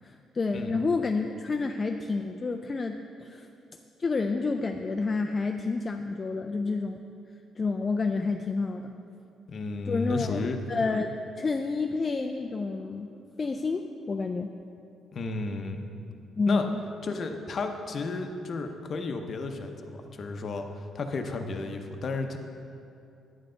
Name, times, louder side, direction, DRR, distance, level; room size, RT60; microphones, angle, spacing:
voice 1, 0.0-3.5 4.0-7.0 7.6-8.9 9.9-13.1 13.4-14.5 16.4-16.8, left 3 dB, 25° left, 4 dB, 0.3 m, -29 dB
voice 2, 9.5-10.6 15.1-15.8 16.5-16.7 17.0-22.4, left 3 dB, 45° left, 5 dB, 0.7 m, -33 dB
10.0 x 7.7 x 3.8 m, 2.6 s
cardioid pair, 125°, 0 cm